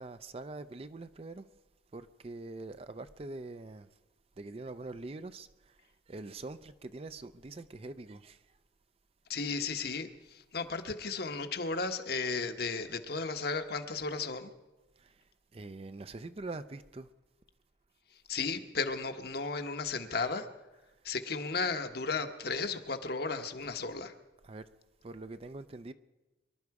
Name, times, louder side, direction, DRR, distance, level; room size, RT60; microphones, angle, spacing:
voice 1, 0.0-1.5 1.9-3.9 4.4-5.8 6.1-8.4 15.0-15.2 15.5-17.1 24.4-24.6 25.0-25.9, right 2 dB, 30° right, 0.4 m, -44 dB
voice 2, 9.3-14.5 18.3-20.5 21.0-24.1, left 4 dB, 55° left, 1.0 m, -34 dB
23.5 x 12.0 x 4.8 m
head